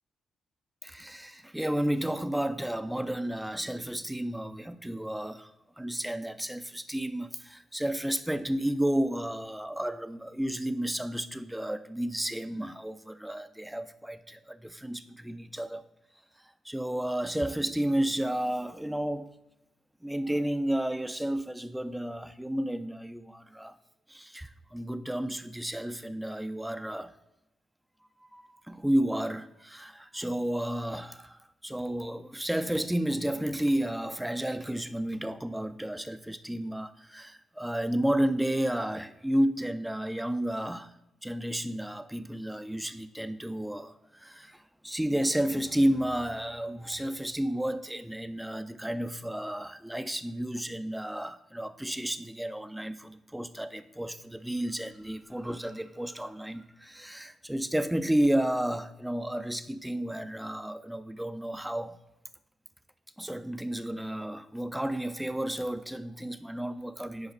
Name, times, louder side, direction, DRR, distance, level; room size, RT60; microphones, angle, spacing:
voice 1, 0.8-15.8 16.4-19.4 20.0-23.8 24.1-27.1 28.3-40.9 41.2-62.0 63.2-67.3, right 1 dB, 5° right, 0.7 m, -32 dB
10.5 x 4.8 x 4.1 m
supercardioid pair, 50°, 0 cm